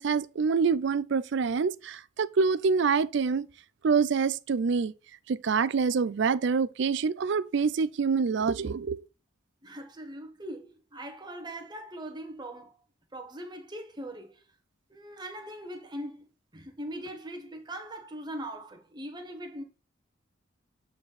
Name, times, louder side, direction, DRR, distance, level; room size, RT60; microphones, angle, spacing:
voice 1, 0.0-3.5 3.8-4.9 5.3-9.0, right 5 dB, 55° right, 0.4 m, -26 dB
voice 2, 9.6-12.7 13.1-14.4 14.9-16.3 16.5-19.6, right 1 dB, 20° right, 1.0 m, -41 dB
7.7 x 4.1 x 4.1 m
head